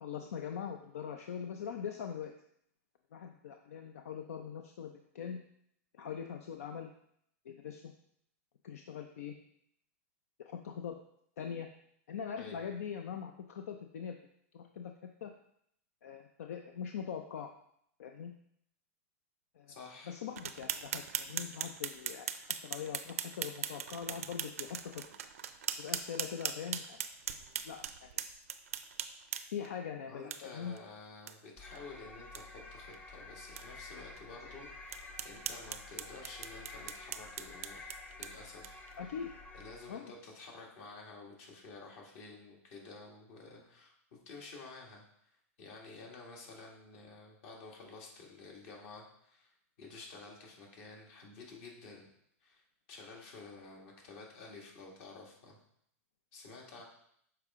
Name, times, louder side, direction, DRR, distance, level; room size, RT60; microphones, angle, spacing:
voice 1, 0.0-2.3 3.1-5.4 5.9-6.9 7.5-7.9 8.6-9.3 10.4-11.0 11.4-11.7 12.1-14.2 14.5-14.9 15.2-15.3 16.0-17.5 18.0-18.3 19.6-19.7 20.1-22.3 22.6-25.0 25.8-27.0 27.6-28.3 29.5-30.7 39.0-39.3 39.9-40.1, left 7 dB, 85° left, 5 dB, 0.5 m, -42 dB
voice 2, 19.7-20.2 30.1-37.9 38.2-39.1 39.5-45.0 45.6-52.1 52.4-52.6 52.9-55.6 56.3-56.8, left 3 dB, 60° left, -1 dB, 1.9 m, -51 dB
sound 1, 20.4-29.7 30.3-30.4 30.8-30.9 31.3-31.4 31.7-31.8 32.2-32.4 32.9-33.0 33.6-33.7 34.2-34.3 34.9-38.9, right 9 dB, 90° right, 0.5 m, -40 dB
sound 2, 31.6-40.1, left 3 dB, 20° left, 0.8 m, -50 dB
6.7 x 4.6 x 3.6 m, 0.70 s
supercardioid pair, 135°, 8 cm